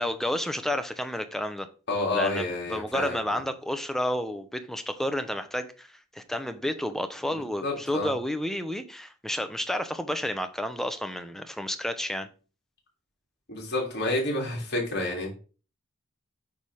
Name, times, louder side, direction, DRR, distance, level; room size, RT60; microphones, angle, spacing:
voice 1, 0.0-1.7 2.1-5.9 6.1-12.3, left 1 dB, ahead, 0.7 m, -31 dB
voice 2, 1.9-3.2 7.2-8.1 13.5-15.3, left 2 dB, 55° left, 3.3 m, -29 dB
8.6 x 3.6 x 6.3 m
head